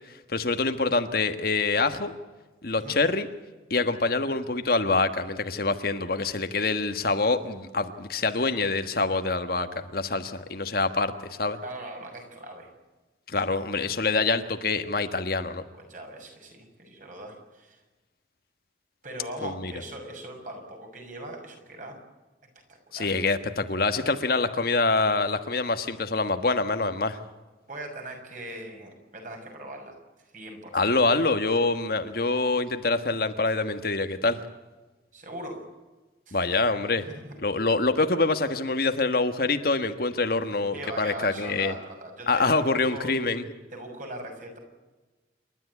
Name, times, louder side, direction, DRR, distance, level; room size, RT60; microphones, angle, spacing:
voice 1, 0.3-2.1 2.6-3.3 3.7-11.6 13.3-15.6 19.4-19.7 22.9-27.2 30.7-34.4 36.3-37.1 37.4-41.7 42.3-43.4, left 3 dB, 55° left, 8 dB, 1.4 m, -25 dB
voice 2, 11.6-12.7 15.7-17.8 19.0-22.0 22.9-23.1 27.7-30.0 30.3-31.0 35.1-35.6 36.3-36.4 36.9-37.4 40.7-42.6 42.9-43.2 43.7-44.6, right 1 dB, 45° right, 3 dB, 6.4 m, -40 dB
29.0 x 12.5 x 9.6 m, 1.2 s
head